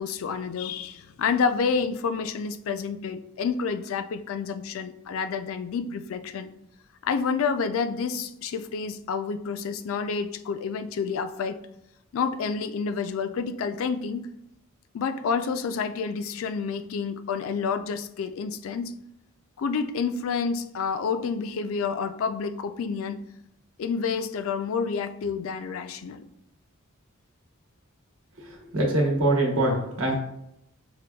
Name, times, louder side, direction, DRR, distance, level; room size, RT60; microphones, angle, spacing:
voice 1, 0.0-6.5 7.0-11.6 12.1-14.3 14.9-18.9 19.6-23.2 23.8-26.2, left 5 dB, 65° left, 10 dB, 0.3 m, -29 dB
voice 2, 28.7-30.1, right 1 dB, 80° right, -1 dB, 1.0 m, -23 dB
6.3 x 2.2 x 2.3 m, 0.79 s
head